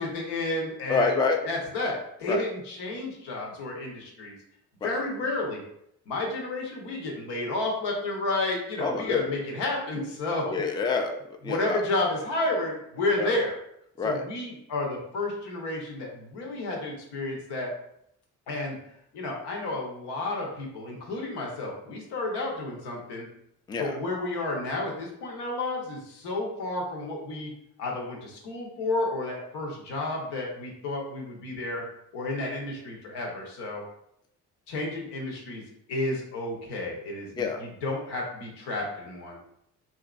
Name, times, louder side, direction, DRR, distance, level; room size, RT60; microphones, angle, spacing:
voice 1, 0.0-1.2 1.4-4.4 4.8-5.6 6.1-10.6 11.5-13.5 14.0-17.7 18.5-18.8 19.1-23.3 23.8-27.5 27.8-31.8 32.1-33.8 34.7-35.6 35.9-39.4, left 2 dB, 70° left, 0 dB, 0.9 m, -31 dB
voice 2, 0.9-1.4 2.3-2.4 4.8-4.9 8.8-9.3 10.5-11.2 11.4-11.8 13.2-13.4 14.0-14.2 23.7-23.9 37.4-37.6, left 4 dB, 10° left, 5 dB, 0.4 m, -27 dB
2.8 x 2.5 x 2.4 m, 0.73 s
hypercardioid pair, 45°, 42 cm